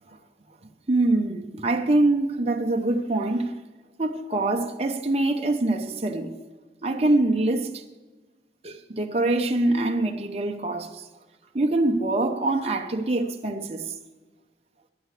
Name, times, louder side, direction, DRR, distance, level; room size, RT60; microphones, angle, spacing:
voice 1, 0.9-3.5 4.0-6.3 6.8-7.8 8.6-11.1 11.5-13.9, right 2 dB, 35° right, 0.9 m, -24 dB
18.5 x 11.5 x 3.3 m
head